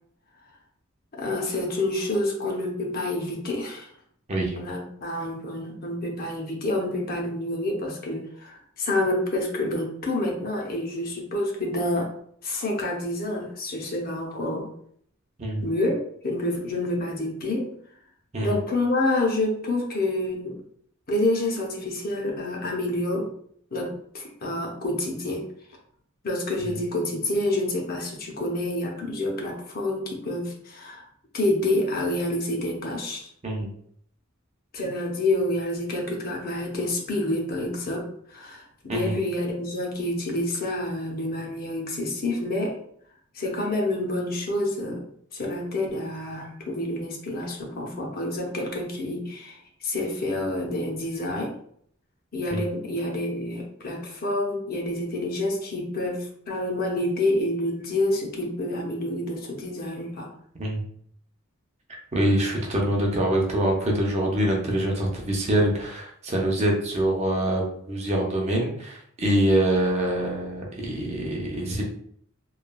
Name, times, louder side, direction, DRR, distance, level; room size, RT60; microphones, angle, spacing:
voice 1, 1.1-3.9 4.6-12.1 12.4-14.7 15.6-17.7 18.4-20.6 21.1-23.3 23.7-25.4 26.2-31.0 31.3-33.3 34.7-42.8 43.3-45.1 45.3-51.5 52.3-60.3, left 1 dB, 45° left, 0 dB, 0.6 m, -28 dB
voice 2, 62.1-71.8, right 1 dB, 30° right, -1 dB, 0.6 m, -25 dB
3.1 x 2.2 x 2.2 m, 0.65 s
head